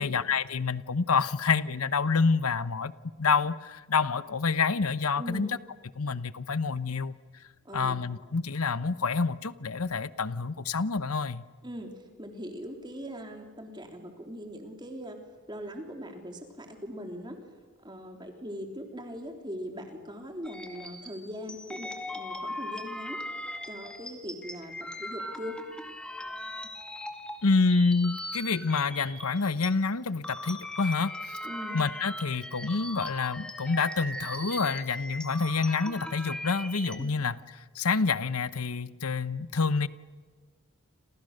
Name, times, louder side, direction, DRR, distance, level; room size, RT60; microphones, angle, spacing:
voice 1, 0.0-2.9 3.2-5.5 6.0-7.1 7.7-11.4 27.4-31.1 31.7-37.3 37.7-39.9, left 4 dB, 85° left, 15 dB, 1.0 m, -27 dB
voice 2, 5.2-5.5 7.6-8.0 11.6-15.2 15.5-17.4 17.8-23.3 23.7-24.7 25.0-25.6 31.4-31.8 37.0-37.1, equal, 20° right, 4 dB, 3.3 m, -40 dB
sound 1, 20.4-29.7 30.1-37.0, left 1 dB, 5° left, 2.2 m, -39 dB
30.0 x 27.0 x 6.6 m, 1.4 s
head